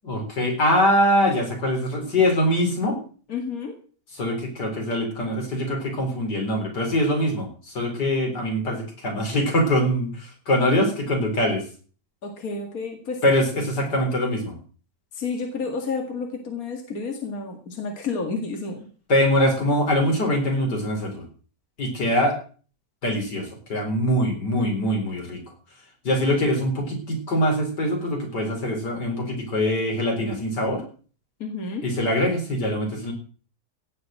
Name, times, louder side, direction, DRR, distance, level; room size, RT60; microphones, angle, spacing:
voice 1, 0.1-3.0 4.2-11.6 13.2-14.5 19.1-21.2 21.8-22.3 23.0-25.4 26.0-30.8 31.8-33.1, equal, 90° left, 2 dB, 4.9 m, -23 dB
voice 2, 3.3-3.7 12.2-13.2 15.1-18.9 31.4-31.9, left 4 dB, 60° left, 3 dB, 2.5 m, -30 dB
16.5 x 6.7 x 7.7 m, 0.41 s
omnidirectional pair, 1.8 m